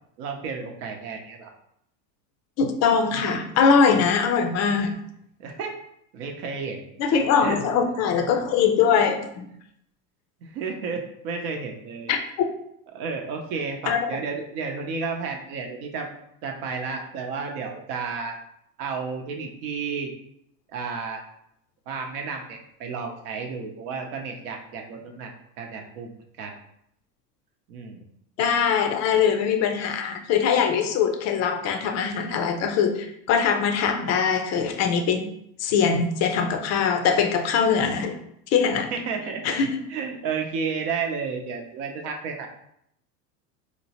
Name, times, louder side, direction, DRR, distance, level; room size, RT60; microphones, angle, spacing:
voice 1, 0.2-1.5 5.4-5.8 6.1-6.8 7.4-7.9 10.4-12.1 12.9-16.1 16.4-18.4 18.8-20.1 20.7-21.2 21.9-25.3 25.6-26.1 26.4-26.5 27.7-28.0 38.7-39.4 39.9-42.5, right 5 dB, 65° right, 2 dB, 0.8 m, -32 dB
voice 2, 2.6-4.9 7.0-9.4 12.1-12.5 13.9-14.2 28.4-35.3 35.6-38.2 38.5-38.9 39.4-39.8, left 6 dB, 35° left, 6 dB, 0.4 m, -22 dB
4.3 x 2.0 x 2.8 m, 0.74 s
hypercardioid pair, 100°, 49 cm